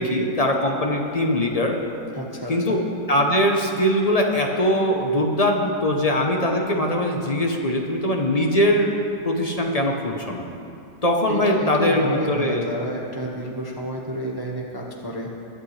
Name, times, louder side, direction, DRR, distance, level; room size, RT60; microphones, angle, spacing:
voice 1, 0.0-1.8 2.5-2.8 3.1-8.9 9.2-10.4 11.0-12.7, left 1 dB, 40° left, 1 dB, 0.5 m, -21 dB
voice 2, 2.1-2.8 11.3-15.3, equal, 15° right, -2 dB, 0.9 m, -30 dB
22.0 x 8.7 x 3.3 m, 2.7 s
omnidirectional pair, 1.8 m